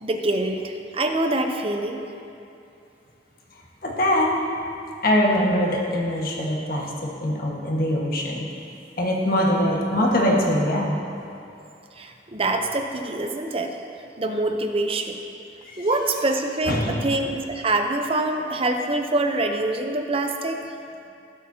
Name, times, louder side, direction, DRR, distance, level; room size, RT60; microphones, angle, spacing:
voice 1, 0.0-2.0 12.0-13.8 14.2-15.2 15.8-20.6, right 2 dB, 30° right, 4 dB, 0.7 m, -25 dB
voice 2, 3.8-4.4 5.0-8.5 9.0-11.0 15.7-15.9 16.7-17.1, left 1 dB, 55° left, -2 dB, 1.5 m, -22 dB
17.0 x 7.7 x 2.8 m, 2.7 s
head